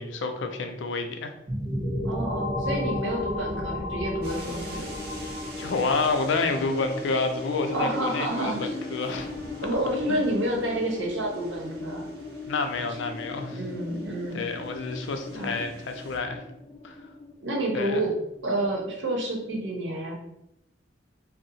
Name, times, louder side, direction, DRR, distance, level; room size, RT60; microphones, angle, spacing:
voice 1, 0.0-1.3 5.6-9.3 10.1-10.2 12.5-13.6 14.3-16.4 16.8-17.0 17.7-18.1, left 3 dB, 85° left, 6 dB, 0.4 m, -29 dB
sound 1, 1.5-11.0, left 1 dB, 10° right, 0.7 m, -34 dB
voice 2, 2.0-4.9 7.7-8.8 9.6-12.0 13.5-14.5 15.3-15.6 17.4-18.1 18.4-20.2, right 1 dB, 90° right, 0 dB, 0.8 m, -29 dB
sound 2, 4.2-16.2, right 2 dB, 60° right, 0.8 m, -48 dB
sound 3, 4.7-19.4, left 2 dB, 20° left, 0.4 m, -40 dB
2.7 x 2.0 x 4.0 m, 0.85 s
head